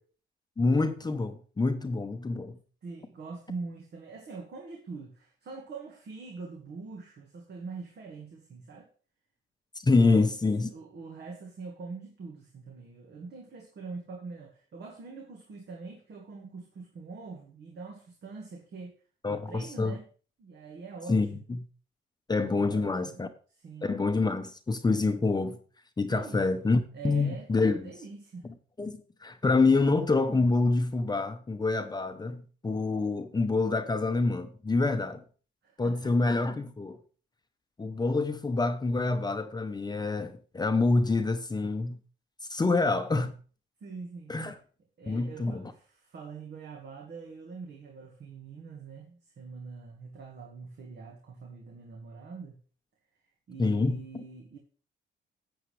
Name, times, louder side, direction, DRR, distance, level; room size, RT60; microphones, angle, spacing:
voice 1, 0.6-2.6 9.8-10.7 19.2-20.0 21.1-21.7 22.3-23.3 23.8-25.6 26.0-27.9 28.8-35.2 35.8-37.0 37.8-42.0 42.5-43.3 44.3-44.6 45.1-45.7 53.6-54.0, left 3 dB, 20° left, 0.8 m, -27 dB
voice 2, 2.8-8.9 10.0-10.3 10.7-18.9 19.3-20.1 20.4-21.5 22.5-23.2 23.5-23.9 26.1-26.4 26.9-27.5 27.8-28.5 35.6-36.2 43.8-44.3 45.0-52.6 53.5-54.6, right 4 dB, 55° right, 1.7 m, -44 dB
11.0 x 8.1 x 3.3 m
cardioid pair, 90°, 20 cm